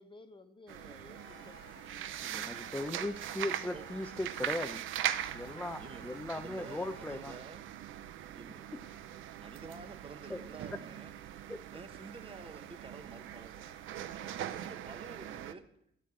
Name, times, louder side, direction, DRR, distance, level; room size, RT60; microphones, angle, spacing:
voice 1, 0.0-2.4 10.6-10.7, left 2 dB, 25° left, 8 dB, 1.2 m, -56 dB
sound 1, 0.7-15.5, right 11 dB, 80° right, 0.7 m, -41 dB
sound 2, 1.2-7.5, left 7 dB, 85° left, 1.7 m, -58 dB
voice 2, 2.2-4.8 5.3-7.3 8.7-9.0 10.3-10.4 11.5-11.6, left 1 dB, 5° left, 7 dB, 0.6 m, -38 dB
voice 3, 5.8-7.7 8.3-8.7 9.1-11.1 11.7-13.8 14.1-15.6, right 3 dB, 25° right, 7 dB, 1.2 m, -50 dB
13.0 x 6.4 x 8.4 m, 0.74 s
cardioid pair, 90°, 20 cm